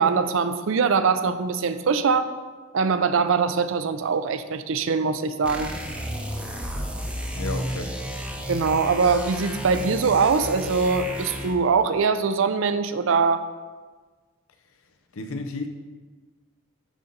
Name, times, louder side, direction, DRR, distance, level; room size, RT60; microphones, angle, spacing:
voice 1, 0.0-2.3 2.7-5.7 8.5-13.5, right 5 dB, 65° right, 11 dB, 0.4 m, -22 dB
sound 1, 5.4-11.7, equal, 5° right, 0.7 m, -32 dB
voice 2, 7.3-8.0 15.1-15.7, left 2 dB, 80° left, 6 dB, 0.7 m, -32 dB
11.0 x 4.0 x 3.9 m, 1.4 s
head